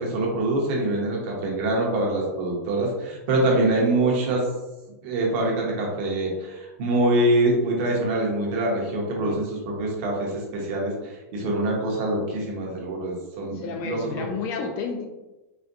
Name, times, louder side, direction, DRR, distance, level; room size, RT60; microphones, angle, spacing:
voice 1, 0.0-4.5 5.0-14.2, right 2 dB, 45° right, -2 dB, 0.9 m, -24 dB
voice 2, 13.5-15.1, left 5 dB, 35° left, 4 dB, 0.3 m, -31 dB
4.1 x 2.2 x 2.6 m, 1.1 s
supercardioid pair, 160°, 8 cm